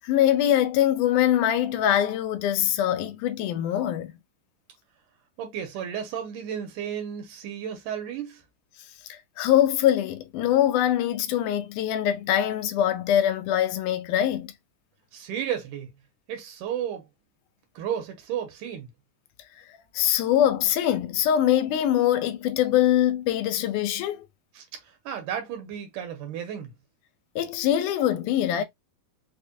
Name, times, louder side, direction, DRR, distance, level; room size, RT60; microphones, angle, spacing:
voice 1, 0.0-4.1 9.1-14.5 19.9-24.3 27.4-28.6, left 11 dB, 80° left, 2.1 m, -23 dB
voice 2, 5.4-8.4 15.1-15.9 16.3-17.1 17.8-18.9 24.6-26.7, right 9 dB, 80° right, 2.5 m, -33 dB
5.3 x 2.2 x 2.6 m
omnidirectional pair, 3.7 m